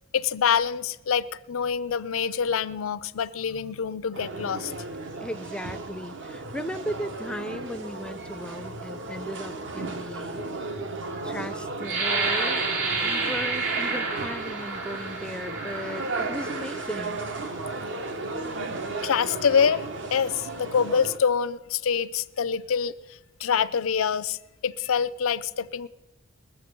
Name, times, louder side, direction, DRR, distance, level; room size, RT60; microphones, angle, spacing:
voice 1, 0.1-4.7 19.0-22.9 23.4-24.4 24.6-25.9, left 7 dB, 85° left, 0.5 m, -25 dB
sound 1, 4.1-21.2, right 3 dB, 60° right, 1.0 m, -35 dB
voice 2, 5.2-10.4 11.2-12.7 13.0-17.2, equal, 5° left, 0.4 m, -36 dB
sound 2, 11.8-17.5 18.1-18.3 18.8-19.2, right 3 dB, 80° right, 2.8 m, -30 dB
20.5 x 7.2 x 6.8 m
head